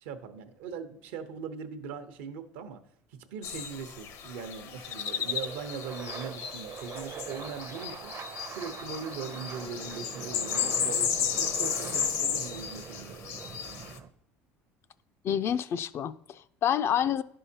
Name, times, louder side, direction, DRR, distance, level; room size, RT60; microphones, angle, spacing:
voice 1, 0.0-2.8 3.1-8.1 8.5-13.2, right 6 dB, 85° right, 0.8 m, -40 dB
sound 1, 3.4-14.0, left 8 dB, 60° left, 0.8 m, -34 dB
sound 2, 3.7-14.1, right 8 dB, 50° right, 0.6 m, -43 dB
voice 2, 15.2-17.2, left 9 dB, 45° left, 0.4 m, -28 dB
11.0 x 5.5 x 2.8 m
supercardioid pair, 95°, 6 cm